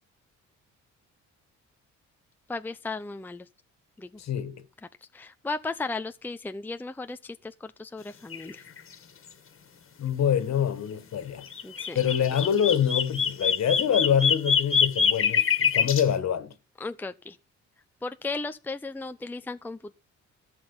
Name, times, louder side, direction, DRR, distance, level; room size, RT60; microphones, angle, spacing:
voice 1, 2.5-3.5 4.0-4.2 5.1-8.6 11.6-12.0 16.8-17.4 18.0-19.9, left 3 dB, 5° left, 0.6 m, -35 dB
voice 2, 4.2-4.6 10.0-11.5 11.9-16.5, left 8 dB, 60° left, 1.8 m, -25 dB
sound 1, 8.3-8.5 8.8-8.9 11.5-16.0, left 7 dB, 45° left, 1.8 m, -25 dB
13.5 x 5.9 x 7.2 m
cardioid pair, 90°, 30 cm